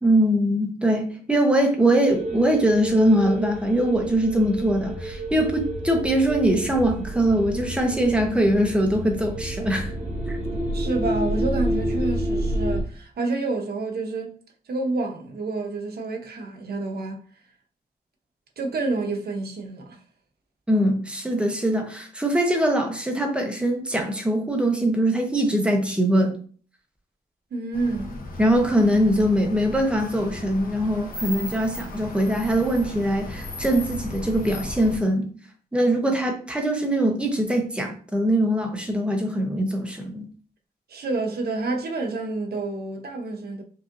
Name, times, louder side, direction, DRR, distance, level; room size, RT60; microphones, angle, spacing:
voice 1, 0.0-9.9 10.3-10.4 20.7-26.4 28.4-35.3 35.7-40.3, right 1 dB, 5° right, 0.7 m, -22 dB
sound 1, 2.0-12.8, right 1 dB, 35° right, 2.0 m, -29 dB
voice 2, 10.7-14.4 14.7-17.2 18.6-20.0 27.5-28.2 40.9-43.6, right 3 dB, 70° right, 0.7 m, -28 dB
sound 2, 27.7-35.0, left 2 dB, 60° left, 0.8 m, -36 dB
5.5 x 2.6 x 2.5 m
wide cardioid pair, 170°, 17 cm